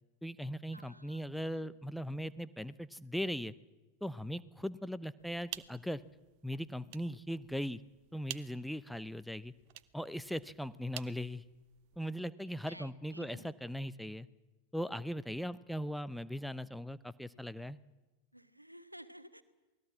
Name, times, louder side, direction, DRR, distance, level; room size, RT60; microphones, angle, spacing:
voice 1, 0.2-3.5 4.0-6.0 6.4-7.8 8.1-9.5 9.9-11.4 12.0-14.3 14.7-17.8, equal, ahead, 15 dB, 0.8 m, -39 dB
voice 2, 0.7-1.2 1.5-1.7 12.7-13.5 18.3-19.4, equal, 90° right, 12 dB, 1.3 m, -53 dB
sound 1, 5.2-12.0, right 15 dB, 45° right, 0.8 m, -51 dB
28.0 x 19.5 x 7.4 m, 1.1 s
figure-of-eight pair, 90°, 0 cm